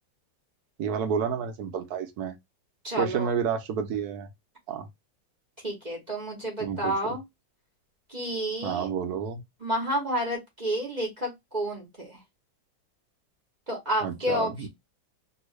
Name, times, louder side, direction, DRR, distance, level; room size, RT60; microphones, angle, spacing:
voice 1, 0.8-2.3 2.9-4.3 4.7-4.9 6.6-6.9 8.6-9.4 14.0-14.7, right 7 dB, 65° right, 1.0 m, -30 dB
voice 2, 2.8-3.3 5.6-7.2 8.1-8.9 9.6-12.2 13.7-14.7, equal, 35° right, 0.8 m, -30 dB
3.0 x 2.7 x 3.1 m
omnidirectional pair, 2.1 m